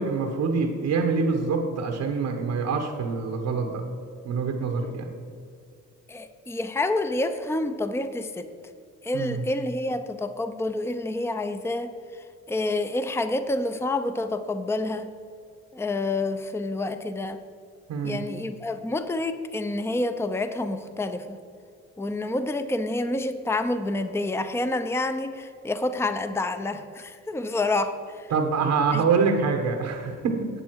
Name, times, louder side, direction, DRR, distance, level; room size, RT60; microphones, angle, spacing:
voice 1, 0.0-3.8 4.2-5.1 9.1-9.4 17.9-18.2 28.3-30.5, right 5 dB, 80° right, 3 dB, 1.3 m, -25 dB
voice 2, 6.1-8.5 9.0-15.1 15.7-17.4 18.0-21.4 22.0-28.3 28.9-29.0, left 2 dB, 10° left, 9 dB, 0.7 m, -28 dB
12.5 x 8.5 x 4.7 m, 2.4 s
cardioid pair, 90°, 30 cm